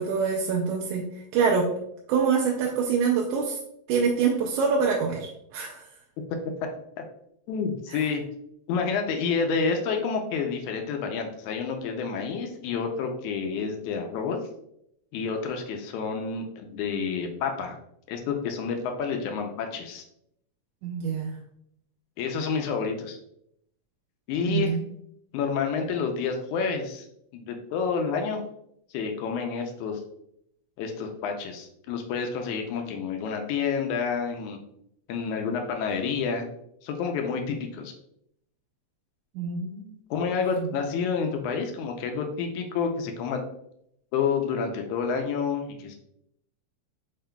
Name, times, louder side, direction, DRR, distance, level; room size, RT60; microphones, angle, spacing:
voice 1, 0.0-1.7 2.1-3.6 3.9-5.9 7.9-8.1 20.8-21.4 24.5-24.8 39.4-40.0 40.4-40.7, right 6 dB, 80° right, -1 dB, 1.9 m, -26 dB
voice 2, 7.5-8.2 8.7-14.4 15.1-17.8 18.1-20.0 22.2-23.2 24.3-24.8 25.3-27.1 27.3-28.4 28.9-30.0 30.8-34.6 35.1-36.5 36.8-37.9 40.1-43.4 44.1-46.0, left 5 dB, 80° left, 4 dB, 1.9 m, -29 dB
6.2 x 3.7 x 2.2 m, 0.75 s
omnidirectional pair, 3.5 m